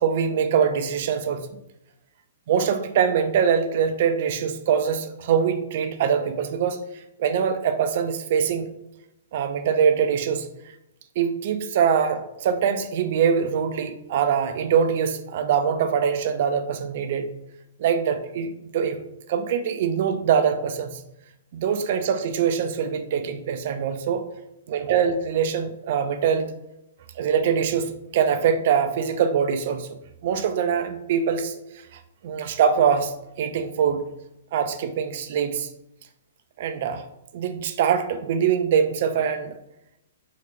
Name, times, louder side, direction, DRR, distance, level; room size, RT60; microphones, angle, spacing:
voice 1, 0.0-1.5 2.5-6.8 7.2-8.7 9.3-10.5 11.2-17.3 17.8-21.0 21.5-24.2 24.7-26.5 27.2-29.9 30.2-31.5 32.2-33.1 33.4-34.0 34.5-35.7 36.6-37.0 37.3-39.5, right 7 dB, 50° right, 8 dB, 0.4 m, -23 dB
3.0 x 2.7 x 3.3 m, 0.87 s
figure-of-eight pair, 115°, 0 cm